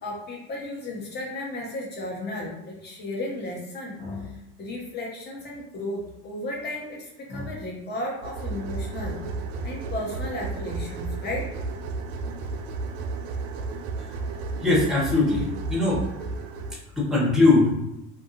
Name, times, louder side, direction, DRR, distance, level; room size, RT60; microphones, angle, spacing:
voice 1, 0.0-9.2 9.6-11.4, left 1 dB, 30° left, -1 dB, 0.9 m, -34 dB
sound 1, 8.2-16.8, right 3 dB, 90° right, 0.5 m, -33 dB
voice 2, 14.6-16.0 17.0-17.7, left 2 dB, ahead, -4 dB, 0.8 m, -21 dB
2.8 x 2.3 x 2.7 m, 0.89 s
supercardioid pair, 125°, 35 cm